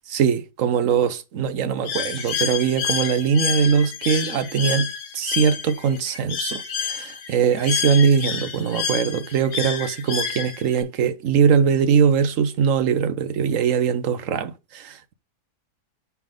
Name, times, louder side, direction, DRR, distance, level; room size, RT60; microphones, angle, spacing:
voice 1, 0.1-15.1, right 7 dB, 60° right, 1.1 m, -21 dB
Bird, 1.9-10.8, left 7 dB, 75° left, 1.7 m, -29 dB
10.5 x 3.6 x 3.7 m
omnidirectional pair, 1.7 m